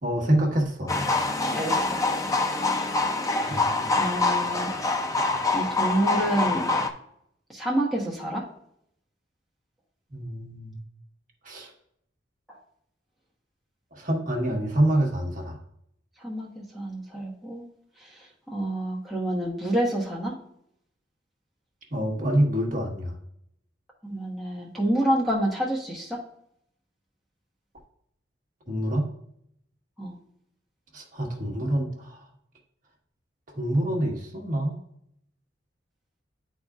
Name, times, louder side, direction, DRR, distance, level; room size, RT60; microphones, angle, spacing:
voice 1, 0.0-0.9 3.5-3.6 10.1-10.8 11.4-11.7 13.9-15.6 21.9-23.1 28.7-29.1 30.9-32.2 33.5-34.8, right 1 dB, 45° right, -1 dB, 1.3 m, -26 dB
sound 1, 0.9-6.9, left 3 dB, 15° left, 0.5 m, -25 dB
voice 2, 1.5-2.0 3.3-3.6 4.0-4.7 5.5-6.6 7.5-8.5 12.5-12.6 16.2-17.6 18.0-20.3 24.0-26.2 30.0-30.1, right 1 dB, ahead, -4 dB, 1.0 m, -28 dB
10.5 x 4.1 x 2.4 m, 0.72 s
head